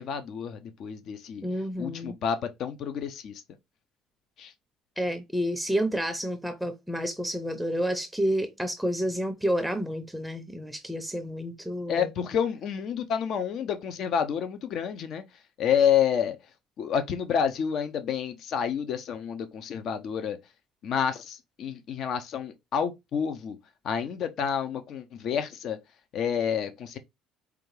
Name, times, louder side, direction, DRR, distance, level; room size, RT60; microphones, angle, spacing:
voice 1, 0.0-1.4 1.8-3.4 4.4-4.5 11.9-15.2 15.6-16.4 16.8-20.4 20.8-23.6 23.8-25.8 26.1-27.0, left 8 dB, 60° left, 0.5 m, -29 dB
voice 2, 1.4-2.2 5.0-12.1, equal, ahead, 0.5 m, -30 dB
4.8 x 2.3 x 3.1 m
supercardioid pair, 80°, 0 cm